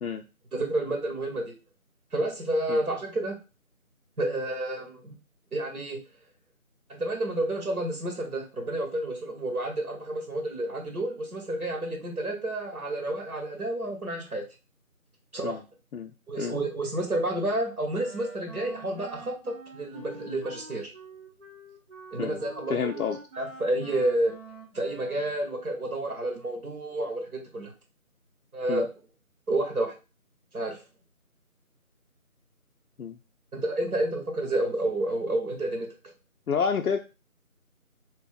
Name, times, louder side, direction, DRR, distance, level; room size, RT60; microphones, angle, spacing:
voice 1, 0.5-1.5 2.1-3.4 4.2-5.1 5.5-6.0 6.9-14.4 15.3-15.6 16.3-20.9 22.1-23.0 23.4-24.3 24.7-27.7 28.5-28.9 29.5-29.9 30.5-30.8 33.5-35.9, right 1 dB, 85° right, 1 dB, 1.5 m, -30 dB
Wind instrument woodwind instrument, 18.0-25.5, right 3 dB, 55° right, 0.9 m, -46 dB
voice 2, 22.7-23.2 28.7-28.9 33.0-33.2 36.5-37.0, left 6 dB, 80° left, 4 dB, 0.5 m, -29 dB
3.1 x 2.9 x 3.6 m, 0.30 s
figure-of-eight pair, 175°, 43 cm